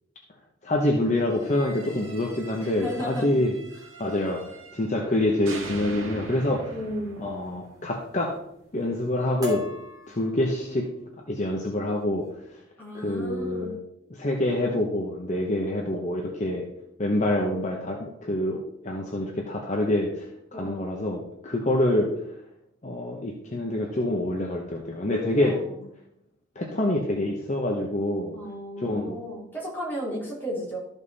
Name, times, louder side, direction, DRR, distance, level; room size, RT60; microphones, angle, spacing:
voice 1, 0.6-3.5 4.0-6.7 7.2-8.4 8.7-9.7 10.1-10.9 11.3-12.2 12.5-12.6 12.9-13.7 14.1-16.7 17.0-20.3 20.5-22.1 22.8-25.6 26.5-28.3 28.8-29.2, left 1 dB, 35° left, 0 dB, 1.0 m, -26 dB
sound 1, 1.3-5.1 5.5-8.5, right 2 dB, 85° right, 1.7 m, -42 dB
voice 2, 2.6-3.3 6.7-7.2 12.8-13.7 20.5-21.0 25.3-25.8 28.3-30.8, equal, 10° left, -5 dB, 3.1 m, -35 dB
sound 2, 6.2-6.5 7.2-7.6 7.9-8.4 8.8-9.1 9.4-10.8 11.4-11.6 12.0-12.3, left 4 dB, 20° right, 3.1 m, -38 dB
13.0 x 5.4 x 4.1 m, 0.80 s
head